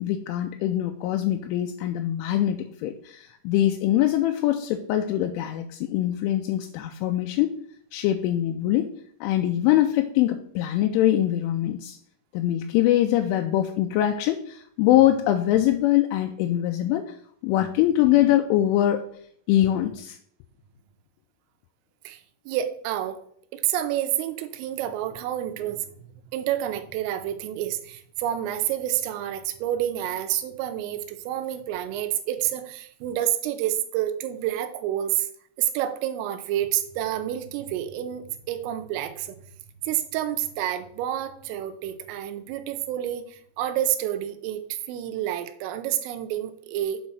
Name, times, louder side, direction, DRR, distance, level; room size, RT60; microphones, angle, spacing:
voice 1, 0.0-7.6 7.9-8.9 9.2-12.0 12.3-17.1 17.4-19.0 19.5-20.2, left 13 dB, 85° left, 5 dB, 2.9 m, -23 dB
voice 2, 22.5-23.2 23.5-25.9 26.3-35.3 35.6-39.4 39.9-47.0, right 12 dB, 90° right, 9 dB, 3.3 m, -29 dB
8.1 x 4.2 x 6.1 m, 0.64 s
omnidirectional pair, 5.8 m